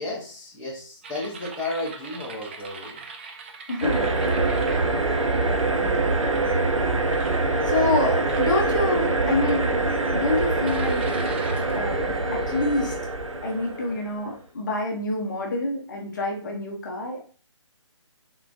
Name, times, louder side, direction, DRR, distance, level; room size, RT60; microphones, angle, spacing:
voice 1, 0.0-3.0, left 2 dB, 5° left, -8 dB, 0.8 m, -33 dB
sound 1, 1.0-5.6 6.1-6.5 7.1-7.8 8.3-8.7 9.4-10.1 10.7-13.0, right 4 dB, 20° right, 0.4 m, -42 dB
voice 2, 3.7-4.9 5.4-6.0 7.6-11.0 11.7-13.0 13.4-17.2, left 2 dB, 40° left, 0 dB, 0.8 m, -27 dB
sound 2, 3.8-14.1, right 3 dB, 80° right, 0.6 m, -24 dB
3.6 x 3.0 x 2.6 m, 0.42 s
figure-of-eight pair, 150°, 16 cm